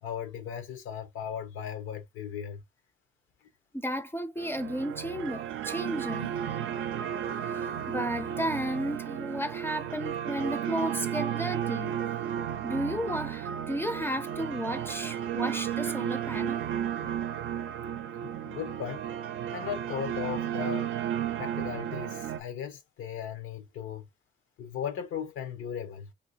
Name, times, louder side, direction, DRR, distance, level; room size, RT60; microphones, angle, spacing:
voice 1, 0.0-2.6 18.4-19.1 19.5-20.9 21.4-24.1 24.6-26.1, left 8 dB, 85° left, 0.9 m, -37 dB
voice 2, 3.7-6.4 7.4-11.9 12.6-16.6, equal, 10° left, 0.5 m, -33 dB
sound 1, 4.4-22.4, right 10 dB, 80° right, 0.5 m, -33 dB
3.1 x 2.8 x 2.8 m
cardioid pair, 90°, 20 cm